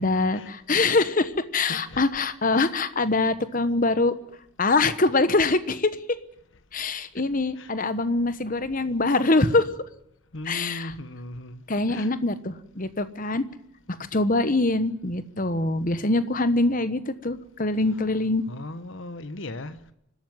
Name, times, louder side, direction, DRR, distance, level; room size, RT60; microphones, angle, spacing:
voice 1, 0.0-4.1 4.6-6.0 6.7-9.7 10.5-10.9 11.7-13.4 14.1-18.4, left 2 dB, 40° left, 1.2 m, -24 dB
voice 2, 1.7-2.0 2.5-2.7 7.2-7.3 7.6-7.7 10.3-11.6 11.9-12.1 18.5-19.8, left 2 dB, 60° left, 1.1 m, -37 dB
26.0 x 12.5 x 9.4 m
head